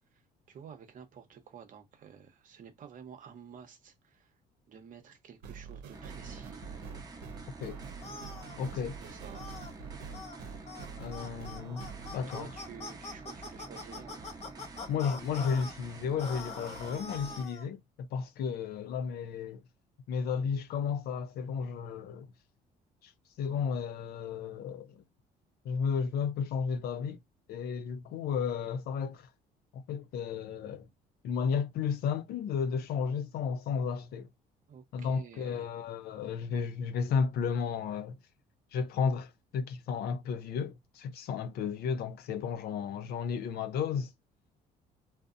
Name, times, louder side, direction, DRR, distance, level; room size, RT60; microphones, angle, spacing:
voice 1, 0.5-4.3 4.7-6.6 8.6-9.5 12.1-14.4 34.7-35.6, right 7 dB, 50° right, 0.8 m, -51 dB
sound 1, 5.4-12.1, right 6 dB, 85° right, 0.7 m, -46 dB
sound 2, 5.9-17.5, right 3 dB, 25° right, 0.8 m, -48 dB
sound 3, 8.0-8.6 9.3-9.7 10.1-10.4 10.7-10.9 11.1-15.7 16.2-17.7, left 4 dB, 40° left, 0.9 m, -43 dB
voice 2, 8.6-8.9 11.0-11.8 12.1-12.5 14.9-19.6 20.1-22.3 23.0-23.1 23.4-25.0 25.6-27.2 27.5-29.3 29.7-30.9 31.2-34.3 34.9-38.2 38.7-44.1, left 6 dB, 65° left, 0.5 m, -33 dB
2.6 x 2.0 x 2.5 m
cardioid pair, 110°, 17 cm